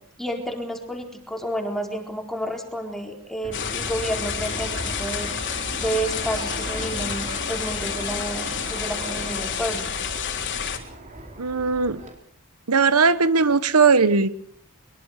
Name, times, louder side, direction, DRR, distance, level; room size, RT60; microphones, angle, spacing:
voice 1, 0.2-5.3 5.8-9.9, right 1 dB, ahead, 4.2 m, -30 dB
Fixed-wing aircraft airplane, 3.4-12.1, right 1 dB, 35° right, 4.8 m, -37 dB
sound 1, 3.5-10.8, left 7 dB, 55° left, 3.6 m, -30 dB
voice 2, 11.4-12.0 12.7-14.3, right 4 dB, 85° right, 1.2 m, -18 dB
23.0 x 23.0 x 6.7 m
head